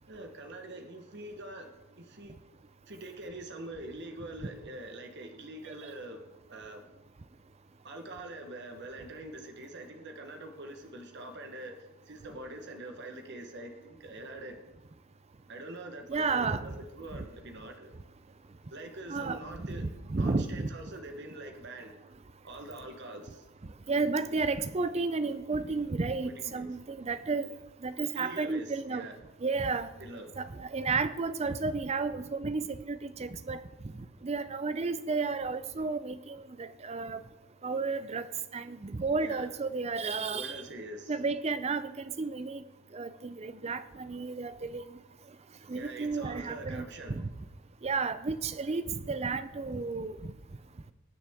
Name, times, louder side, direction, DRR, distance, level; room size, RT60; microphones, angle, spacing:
voice 1, 0.1-1.7 2.0-2.4 2.9-6.2 6.5-6.8 7.8-14.6 15.5-17.9 18.7-19.8 20.2-21.9 22.4-23.5 26.4-26.7 28.1-29.1 30.0-30.3 39.2-39.5 40.3-41.1 45.7-47.1, right 1 dB, 50° right, 1.2 m, -44 dB
voice 2, 16.1-16.6 17.1-17.2 19.1-20.7 23.9-27.5 27.8-29.1 29.4-29.9 30.4-33.6 34.2-37.2 37.6-38.3 38.5-40.6 41.1-42.6 42.9-44.8 45.7-47.3 47.8-50.3, right 4 dB, 30° right, 0.5 m, -32 dB
19.5 x 7.3 x 3.6 m
head